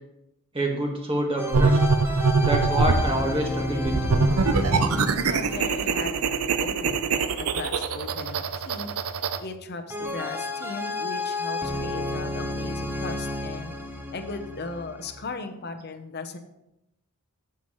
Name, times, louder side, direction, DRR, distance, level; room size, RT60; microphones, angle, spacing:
voice 1, 0.5-1.8 2.4-3.9, right 1 dB, 25° right, 1 dB, 1.6 m, -27 dB
sound 1, 1.4-7.5 9.9-15.3, left 1 dB, 10° right, 0.9 m, -32 dB
sound 2, 1.5-3.1 3.8-9.4, right 4 dB, 80° right, 0.6 m, -23 dB
voice 2, 4.5-6.1 6.6-8.9 9.4-13.8 14.1-16.4, left 3 dB, 45° left, 7 dB, 0.8 m, -37 dB
14.5 x 6.0 x 3.1 m, 0.87 s
head